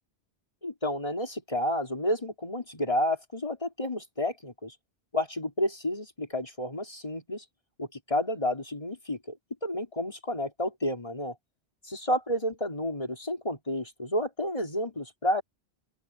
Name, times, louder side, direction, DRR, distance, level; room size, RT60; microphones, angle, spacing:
voice 1, 0.6-4.7 5.1-7.4 7.8-9.4 9.6-11.3 11.9-15.4, left 1 dB, 30° left, 3.5 m, -30 dB
open air
omnidirectional pair, 1.1 m